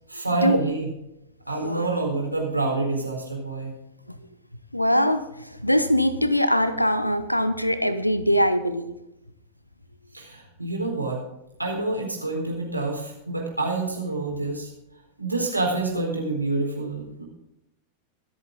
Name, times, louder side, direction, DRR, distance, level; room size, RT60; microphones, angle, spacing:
voice 1, 0.1-0.9 1.5-3.8 10.1-11.2 11.6-14.7 15.2-17.2, right 3 dB, 85° right, -1 dB, 4.1 m, -27 dB
voice 2, 4.7-8.9, equal, 90° left, 13 dB, 1.0 m, -22 dB
24.0 x 8.1 x 3.8 m, 0.87 s
figure-of-eight pair, 90°, 0 cm